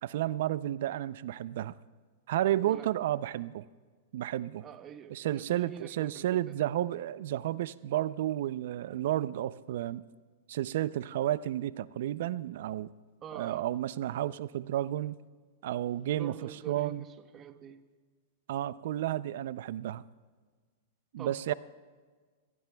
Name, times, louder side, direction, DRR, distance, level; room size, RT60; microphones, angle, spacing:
voice 1, 0.0-1.8 2.3-3.6 4.1-4.6 5.1-10.0 10.5-12.9 13.3-15.2 15.6-17.0 18.5-20.0 21.1-21.5, right 13 dB, 65° right, 18 dB, 0.4 m, -32 dB
voice 2, 2.6-2.9 4.6-6.7 13.2-13.6 16.1-17.8 21.2-21.5, right 9 dB, 25° right, 11 dB, 0.8 m, -46 dB
25.5 x 15.5 x 2.3 m, 1.5 s
hypercardioid pair, 135°, 0 cm